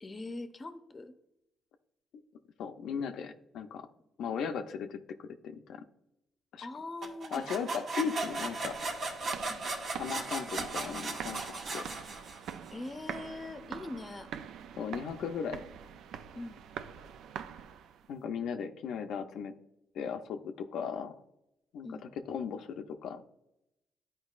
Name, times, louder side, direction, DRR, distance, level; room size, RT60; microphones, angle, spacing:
voice 1, 0.0-1.1 6.6-7.5 9.5-9.7 12.7-14.3 16.3-16.6 21.8-22.1, left 2 dB, 25° left, 9 dB, 0.7 m, -42 dB
voice 2, 2.6-3.9 4.2-5.8 6.5-6.7 7.3-9.0 9.9-11.9 14.8-15.6 18.1-19.5 19.9-21.2 21.7-21.9 22.3-23.2, left 6 dB, 80° left, 6 dB, 0.5 m, -37 dB
sound 1, 7.0-12.7, right 3 dB, 60° right, 1.5 m, -37 dB
sound 2, 8.1-18.1, right 8 dB, 80° right, 0.4 m, -45 dB
11.0 x 4.5 x 2.4 m, 0.84 s
cardioid pair, 90°, 0 cm